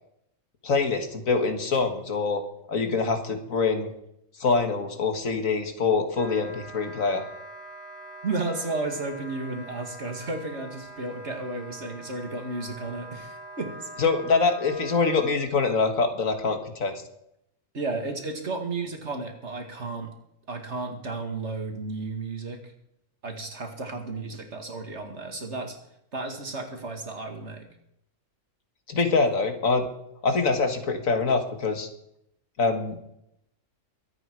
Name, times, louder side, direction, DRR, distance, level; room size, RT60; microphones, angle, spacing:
voice 1, 0.6-2.4 2.7-3.9 4.4-7.2 14.0-17.0 28.9-29.9 30.2-31.9 32.6-33.0, left 4 dB, 80° left, 6 dB, 2.1 m, -24 dB
Wind instrument woodwind instrument, 6.1-15.4, right 1 dB, 40° left, 3.3 m, -43 dB
voice 2, 8.2-13.9 17.7-20.1 20.5-22.7 23.2-25.8 26.1-27.7, right 3 dB, 55° right, 4 dB, 2.5 m, -33 dB
23.0 x 8.9 x 4.8 m, 0.78 s
omnidirectional pair, 1.4 m